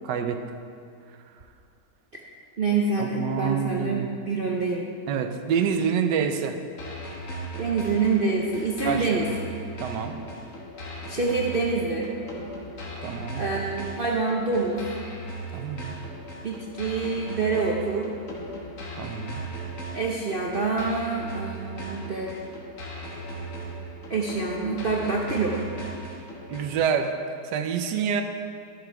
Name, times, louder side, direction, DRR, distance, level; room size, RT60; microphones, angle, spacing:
voice 1, 0.0-0.4 3.0-4.1 5.1-6.6 8.8-9.2 9.8-10.2 13.0-13.4 15.5-16.0 19.0-19.4 26.5-27.1 27.4-28.2, right 7 dB, 75° right, 7 dB, 1.3 m, -27 dB
voice 2, 2.6-4.9 7.6-9.2 11.1-12.1 13.4-14.8 16.4-18.1 19.9-22.3 24.1-25.6, right 4 dB, 55° right, -2 dB, 0.6 m, -26 dB
sound 1, 6.8-26.8, right 1 dB, 50° left, 1.5 m, -38 dB
13.0 x 6.8 x 4.6 m, 2.3 s
omnidirectional pair, 2.0 m